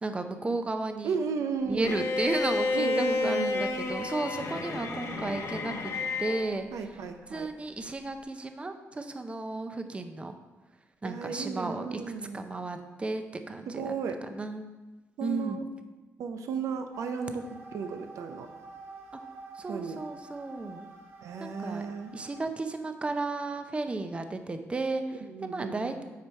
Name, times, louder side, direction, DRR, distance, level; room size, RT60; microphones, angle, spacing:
voice 1, 0.0-1.1 1.7-5.9 6.2-6.7 7.3-10.3 11.0-12.0 12.3-13.9 14.3-14.7 15.2-15.6 19.6-20.9 21.4-21.9 22.1-26.0, right 3 dB, 20° right, 7 dB, 0.6 m, -34 dB
voice 2, 1.0-2.0 2.7-3.6 6.7-7.5 11.0-12.4 13.7-14.2 15.2-15.7 16.2-18.5 19.7-20.0 21.2-22.1 25.2-26.0, right 5 dB, 90° right, 7 dB, 0.6 m, -34 dB
Bowed string instrument, 1.8-6.5, left 3 dB, 75° left, 1.0 m, -30 dB
sound 1, 16.9-22.4, right 3 dB, 45° right, 1.5 m, -48 dB
8.4 x 4.4 x 4.6 m, 1.1 s
cardioid pair, 110°, 5 cm